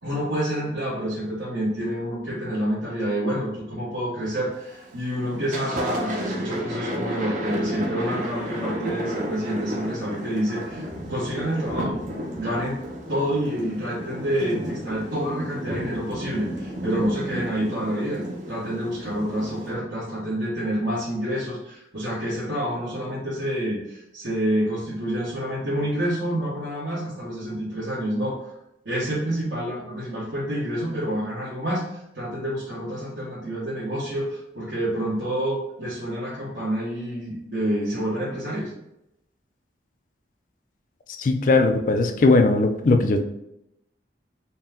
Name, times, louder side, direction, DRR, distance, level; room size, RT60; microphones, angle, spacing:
voice 1, 0.0-12.0 12.3-12.8 13.1-28.3 28.8-38.7, equal, 75° right, -10 dB, 1.4 m, -28 dB
Thunder, 4.5-4.9 5.3-19.7, equal, 45° right, 0.6 m, -32 dB
voice 2, 41.2-43.2, left 3 dB, 45° left, 6 dB, 0.4 m, -19 dB
4.2 x 2.2 x 3.6 m, 0.82 s
head